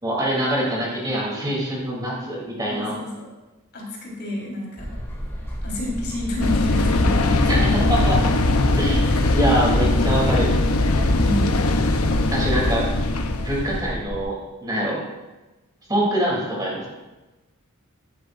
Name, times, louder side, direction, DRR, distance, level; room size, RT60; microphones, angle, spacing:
voice 1, 0.0-2.9 7.5-8.2 8.8-9.1 9.3-10.5 12.3-12.9 13.4-15.0 15.9-16.9, right 1 dB, 20° right, -4 dB, 3.2 m, -24 dB
voice 2, 2.7-3.3 3.7-4.9 5.6-7.6 9.0-9.3 11.1-11.6, left 1 dB, 50° left, -4 dB, 4.4 m, -29 dB
sound 1, 4.8-14.2, equal, 10° left, 3.3 m, -31 dB
sound 2, 6.4-13.9, left 2 dB, 75° left, 0.9 m, -20 dB
16.0 x 11.0 x 2.6 m, 1.1 s
head